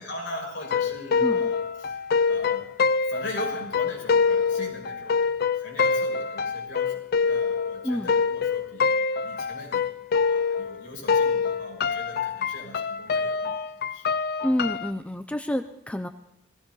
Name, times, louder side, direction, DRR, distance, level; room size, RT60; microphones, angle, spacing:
voice 1, 0.0-2.0 2.3-2.6 3.1-8.9 9.2-9.9 10.3-13.5 13.9-14.0, left 1 dB, 75° left, -1 dB, 5.8 m, -39 dB
sound 1, 0.6-10.8 11.1-14.9, left 5 dB, 55° left, 0.5 m, -25 dB
voice 2, 14.4-16.1, left 1 dB, 5° left, 8 dB, 0.5 m, -28 dB
18.0 x 15.5 x 4.0 m, 0.83 s
head